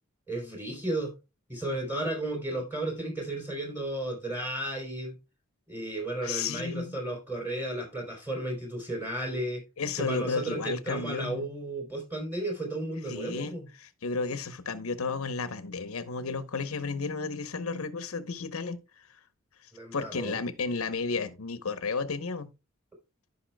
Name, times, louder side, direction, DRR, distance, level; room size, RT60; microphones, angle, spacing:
voice 1, 0.3-1.1 1.5-5.1 5.7-9.6 10.0-13.7 19.7-20.4, right 1 dB, 10° right, 3.2 m, -33 dB
voice 2, 6.2-6.9 9.8-11.5 13.1-18.8 19.9-22.5, left 4 dB, 80° left, 0.8 m, -33 dB
14.0 x 5.5 x 2.2 m
head